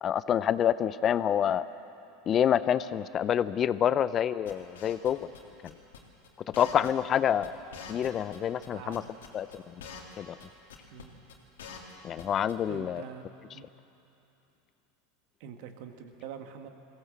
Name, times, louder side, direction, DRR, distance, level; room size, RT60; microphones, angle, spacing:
voice 1, 0.0-1.6 2.3-5.3 5.6-5.7 6.6-7.5 7.9-9.0 9.3-9.7 10.2-10.4 12.0-13.0, left 9 dB, 40° left, 15 dB, 0.6 m, -27 dB
sound 1, 4.5-5.4 5.6-6.0 6.2-6.3 6.5-7.2 7.4-7.5 7.7-8.7 8.9-10.1 10.4-10.5 10.7-11.0 11.3-12.2 12.5-12.6, left 6 dB, 80° left, 2.4 m, -45 dB
voice 2, 8.7-9.1 10.9-11.1 12.7-13.7 15.4-16.7, right 8 dB, 65° right, 6 dB, 1.8 m, -45 dB
21.5 x 16.0 x 7.5 m, 2.9 s
hypercardioid pair, 90°, 0 cm